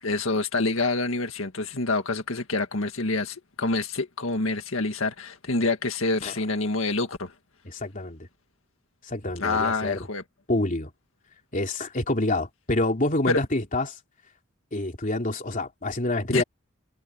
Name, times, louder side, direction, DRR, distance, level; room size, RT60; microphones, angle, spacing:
voice 1, 0.0-7.3 9.4-10.2 13.3-13.4 16.3-16.4, left 3 dB, 80° left, 1.8 m, -27 dB
voice 2, 7.6-8.3 9.0-10.1 10.5-10.9 11.5-14.0 14.7-16.4, left 2 dB, 40° left, 3.3 m, -27 dB
head